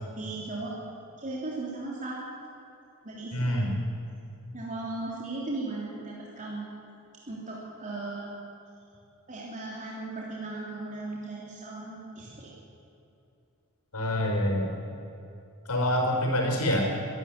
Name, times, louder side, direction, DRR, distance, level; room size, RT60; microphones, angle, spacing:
voice 1, 0.2-0.7 1.2-2.2 3.0-3.7 4.5-6.7 7.3-8.3 9.3-12.5, right 2 dB, 35° right, -5 dB, 3.4 m, -37 dB
voice 2, 3.3-3.7 13.9-14.7 15.7-16.8, equal, 90° left, 1 dB, 5.0 m, -26 dB
25.0 x 12.5 x 9.0 m, 2.8 s
head